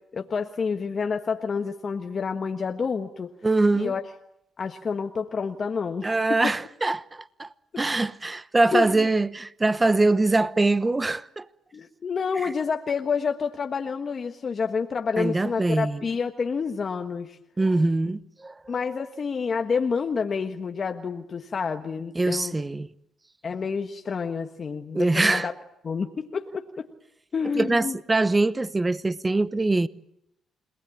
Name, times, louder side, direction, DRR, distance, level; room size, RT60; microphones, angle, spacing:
voice 1, 0.1-3.3 3.7-4.0 4.6-6.5 8.7-9.1 11.7-17.4 18.7-22.6 23.4-25.5 25.8-26.9 27.3-28.0, left 5 dB, 45° left, 1.5 m, -28 dB
voice 2, 3.4-4.0 6.0-7.5 7.8-11.5 12.4-12.5 15.2-16.0 17.6-18.7 22.1-22.9 24.9-25.5 27.6-29.9, right 2 dB, 20° right, 1.0 m, -23 dB
29.5 x 19.5 x 8.6 m
cardioid pair, 90°, 0 cm